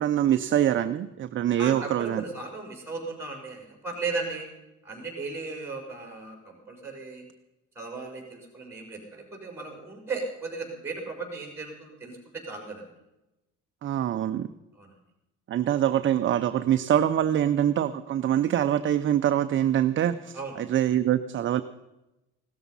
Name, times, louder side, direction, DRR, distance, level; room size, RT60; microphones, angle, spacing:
voice 1, 0.0-2.2 13.8-14.5 15.5-21.6, right 10 dB, 40° right, 9 dB, 0.6 m, -24 dB
voice 2, 1.6-4.5 4.8-7.2 7.7-12.9 14.7-14.9 20.3-20.6, right 3 dB, 10° right, 2 dB, 4.9 m, -36 dB
17.0 x 13.0 x 5.5 m, 0.96 s
cardioid pair, 150°, 32 cm